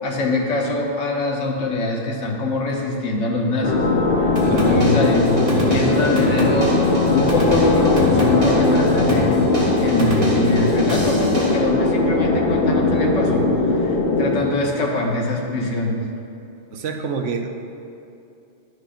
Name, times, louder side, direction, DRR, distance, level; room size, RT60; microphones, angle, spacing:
voice 1, 0.0-3.8 4.2-9.5 9.8-13.4 13.7-16.0, left 2 dB, 70° left, 0 dB, 1.3 m, -23 dB
sound 1, 3.6-14.4, left 3 dB, 50° left, 1.0 m, -19 dB
sound 2, 4.4-11.6, right 1 dB, 45° right, 1.4 m, -27 dB
voice 2, 16.7-17.5, right 5 dB, 75° right, 4 dB, 1.0 m, -27 dB
11.0 x 6.3 x 2.5 m, 2.7 s
omnidirectional pair, 1.3 m